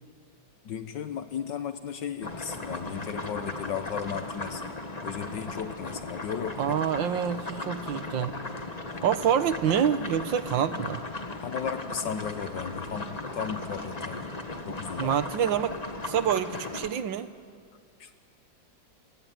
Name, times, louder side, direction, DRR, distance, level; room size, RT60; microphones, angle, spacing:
voice 1, 0.6-4.6 5.0-6.8 10.8-10.9 11.4-14.3 14.7-15.2 18.0-18.2, left 8 dB, 75° left, 9 dB, 1.6 m, -35 dB
sound 1, 2.2-16.9, left 2 dB, 20° left, 1.6 m, -37 dB
voice 2, 6.6-8.4 9.0-11.0 15.0-17.3, right 9 dB, 90° right, 12 dB, 1.8 m, -27 dB
27.5 x 23.5 x 9.2 m, 2.1 s
omnidirectional pair, 2.0 m